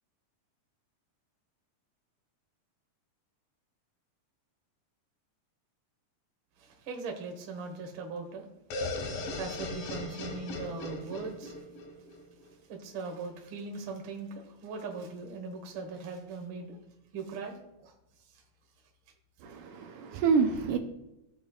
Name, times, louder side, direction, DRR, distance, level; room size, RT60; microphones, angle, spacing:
voice 1, 6.6-8.5 9.4-11.5 12.7-16.8 17.1-17.9 19.7-20.0, right 4 dB, 55° right, 1.4 m, -40 dB
sound 1, 8.7-12.5, left 2 dB, 85° left, 3.0 m, -38 dB
voice 2, 19.4-20.8, right 5 dB, 80° right, 2.0 m, -27 dB
15.5 x 5.4 x 2.4 m
omnidirectional pair, 3.9 m